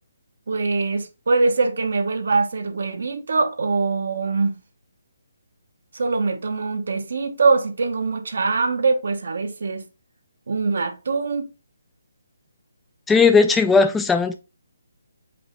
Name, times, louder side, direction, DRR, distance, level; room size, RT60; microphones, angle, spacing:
voice 1, 0.5-4.5 5.9-9.8 10.5-11.5, right 4 dB, 65° right, 0.9 m, -23 dB
voice 2, 13.1-14.3, left 4 dB, 5° left, 0.3 m, -16 dB
5.1 x 3.0 x 3.2 m
hypercardioid pair, 165°, 0 cm